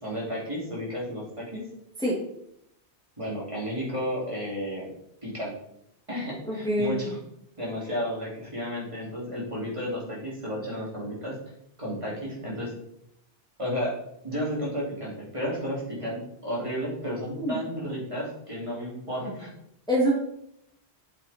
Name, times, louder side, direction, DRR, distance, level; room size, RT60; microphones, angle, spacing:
voice 1, 0.0-1.6 3.2-4.9 5.2-5.5 6.1-7.2 7.6-11.4 11.8-12.7 13.6-14.0 14.2-19.5, equal, 30° right, -5 dB, 3.1 m, -32 dB
voice 2, 6.4-7.0 17.4-17.6 19.9-20.1, equal, 5° left, -5 dB, 2.2 m, -24 dB
8.7 x 7.0 x 4.4 m, 0.76 s
omnidirectional pair, 1.1 m